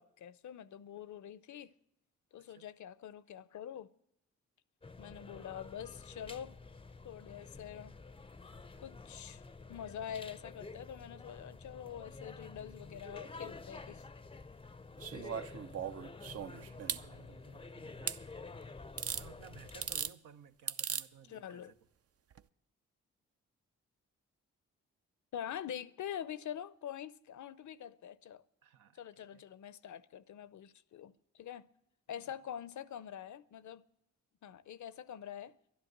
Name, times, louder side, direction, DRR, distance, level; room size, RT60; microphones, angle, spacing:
voice 1, 0.0-1.7 2.3-3.9 5.0-6.6 7.0-7.9 8.8-9.4 9.7-14.0 15.1-15.5 21.3-21.7 25.3-28.4 29.0-31.7 32.1-33.8 34.4-35.6, left 9 dB, 60° left, 0.6 m, -45 dB
sound 1, 4.8-20.1, left 3 dB, 15° left, 0.5 m, -50 dB
sound 2, 15.0-17.0 18.1-18.2 19.0-19.2 19.7-20.1 20.7-21.1 22.3-22.4, right 8 dB, 45° right, 0.6 m, -38 dB
voice 2, 16.2-18.3 19.0-21.7 28.6-29.4 32.1-32.3, right 8 dB, 75° right, 0.9 m, -58 dB
11.5 x 10.5 x 7.8 m
supercardioid pair, 50°, 32 cm